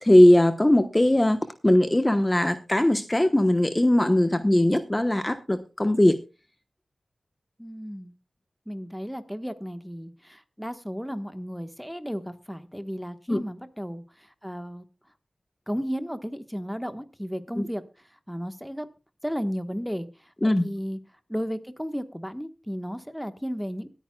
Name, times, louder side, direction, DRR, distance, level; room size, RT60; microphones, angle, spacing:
voice 1, 0.0-6.2 13.3-13.4 17.6-17.7 20.4-20.6, left 1 dB, 20° left, 9 dB, 1.0 m, -20 dB
voice 2, 7.6-8.1 8.7-14.8 15.7-17.8 18.3-18.9 19.2-20.1 20.4-21.0 21.3-23.9, equal, ahead, 10 dB, 1.3 m, -34 dB
23.0 x 9.3 x 2.3 m, 0.30 s
wide cardioid pair, 65°, 0 cm